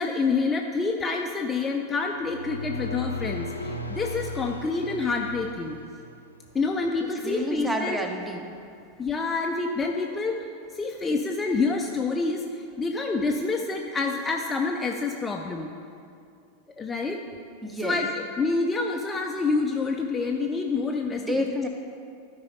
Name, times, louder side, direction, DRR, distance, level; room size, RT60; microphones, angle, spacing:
voice 1, 0.0-5.8 6.5-8.0 9.0-10.5 10.7-15.7 16.8-17.2 17.8-21.5, left 4 dB, 15° left, 2 dB, 0.5 m, -27 dB
sound 1, 2.1-6.5, left 2 dB, 80° left, 0.6 m, -35 dB
voice 2, 7.2-8.5 17.6-18.0 21.1-21.7, equal, 10° right, 4 dB, 0.8 m, -30 dB
12.5 x 4.8 x 4.0 m, 2.4 s
figure-of-eight pair, 90°, 0 cm